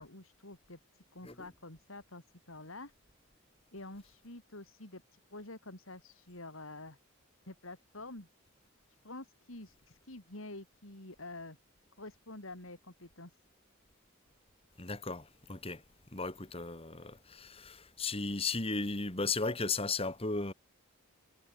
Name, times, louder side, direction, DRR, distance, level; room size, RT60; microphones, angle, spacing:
voice 1, 0.0-2.9 3.7-7.0 7.5-8.3 9.0-11.6 12.0-13.3, left 2 dB, 75° left, 4.9 m, -48 dB
voice 2, 14.8-15.8 16.1-20.5, left 3 dB, 25° left, 2.5 m, -35 dB
head